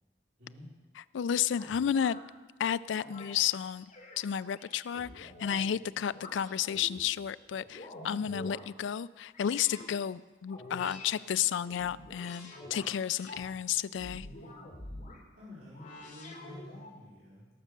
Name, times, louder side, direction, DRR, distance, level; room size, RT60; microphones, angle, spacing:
voice 1, 0.4-0.7 15.3-17.5, left 1 dB, 85° right, -8 dB, 4.3 m, -50 dB
voice 2, 1.1-2.2 2.6-3.9 4.2-14.3, left 9 dB, 85° left, 17 dB, 0.3 m, -32 dB
sound 1, 1.5-2.2 2.9-3.4 3.9-5.7 6.1-7.0 7.5-8.7 9.3-9.9 10.5-11.1 11.6-13.5 13.9-15.2 15.7-17.0, left 1 dB, 45° left, 2.8 m, -47 dB
18.5 x 6.5 x 6.6 m, 1.2 s
head